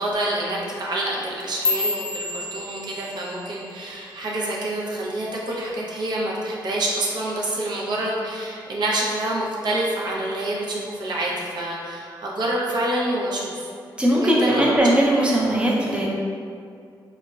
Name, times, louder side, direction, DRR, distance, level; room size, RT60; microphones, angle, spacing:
voice 1, 0.0-13.7 14.2-15.2, right 1 dB, 60° right, -4 dB, 0.5 m, -27 dB
sound 1, 1.2-5.6 5.9-6.3 6.7-7.1 7.5-7.7 8.3-8.7 9.1-9.9 10.3-10.7 11.5-11.6, left 3 dB, 55° left, 0.4 m, -31 dB
voice 2, 14.0-16.1, right 1 dB, 10° right, -4 dB, 0.5 m, -19 dB
3.5 x 2.0 x 2.2 m, 2.3 s
cardioid pair, 80°, 8 cm